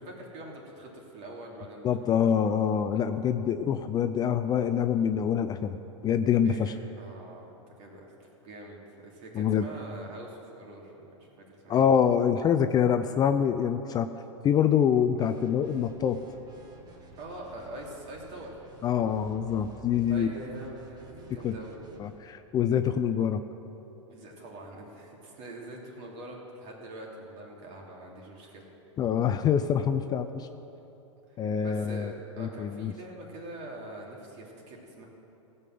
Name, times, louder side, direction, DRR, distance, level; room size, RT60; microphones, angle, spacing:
voice 1, 0.0-2.2 6.4-7.5 7.8-8.1 8.4-11.8 17.2-18.6 20.1-21.8 24.1-28.7 31.3-35.1, right 1 dB, 45° right, -2 dB, 3.0 m, -44 dB
voice 2, 1.8-5.8 6.0-6.7 9.3-9.7 11.7-14.1 14.4-16.2 18.8-20.3 21.4-21.5 22.0-23.4 29.0-30.5 31.4-32.1 32.4-32.9, left 8 dB, 25° left, 9 dB, 0.4 m, -25 dB
sound 1, 15.1-22.2, right 3 dB, 25° right, 1.6 m, -51 dB
16.0 x 5.5 x 7.6 m, 3.0 s
hypercardioid pair, 110°, 16 cm